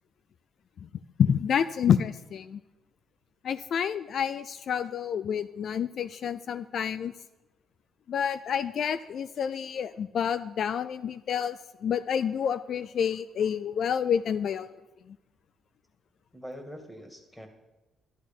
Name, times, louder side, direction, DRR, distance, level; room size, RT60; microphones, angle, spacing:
voice 1, 1.2-2.6 3.4-7.1 8.1-14.7 15.1-15.2, left 8 dB, 60° left, 14 dB, 0.4 m, -28 dB
voice 2, 16.3-17.5, equal, 5° left, 6 dB, 2.3 m, -43 dB
11.5 x 11.5 x 5.4 m, 1.1 s
cardioid pair, 90°, 0 cm